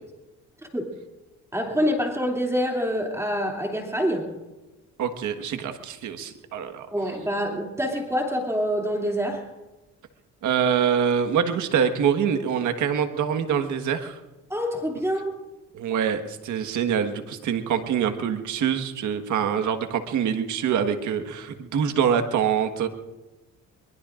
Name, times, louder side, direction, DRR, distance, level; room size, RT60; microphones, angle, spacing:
voice 1, 1.5-4.4 6.9-9.5 14.5-15.3, equal, 10° right, 0 dB, 2.7 m, -26 dB
voice 2, 5.0-6.9 10.4-14.2 15.7-22.9, right 8 dB, 75° right, 7 dB, 1.5 m, -25 dB
23.0 x 22.5 x 2.5 m, 1.1 s
cardioid pair, 90°, 30 cm